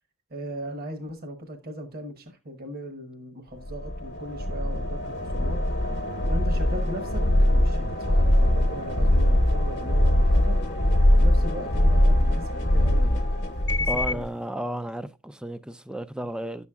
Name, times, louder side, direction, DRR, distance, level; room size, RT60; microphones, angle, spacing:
voice 1, 0.3-5.6 6.0-7.2 7.5-10.6 11.2-13.2 13.8-14.3 16.2-16.3, equal, 45° right, 1.0 m, -38 dB
sound 1, 3.6-14.3, left 1 dB, 50° left, 0.9 m, -22 dB
voice 2, 13.9-16.7, equal, 5° right, 0.4 m, -33 dB
10.5 x 7.0 x 2.3 m
head